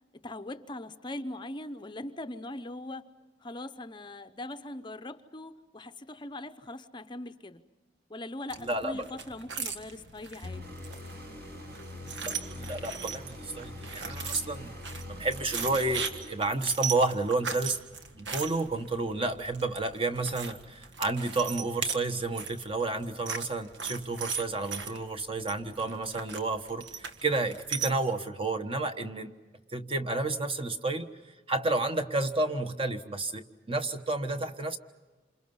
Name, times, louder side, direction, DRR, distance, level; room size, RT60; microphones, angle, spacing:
voice 1, 0.1-3.0 3.4-7.6 8.1-10.8, left 1 dB, 25° left, 10 dB, 0.7 m, -41 dB
sound 1, 8.5-27.9, right 6 dB, 75° right, 1.8 m, -39 dB
voice 2, 8.6-9.1 12.2-14.8 15.0-17.8 18.1-29.3 29.7-31.1 31.5-34.8, right 2 dB, 30° right, 7 dB, 1.3 m, -31 dB
sound 2, 10.4-16.9, left 1 dB, 60° right, 7.7 m, -43 dB
28.5 x 27.5 x 5.5 m, 1.2 s
head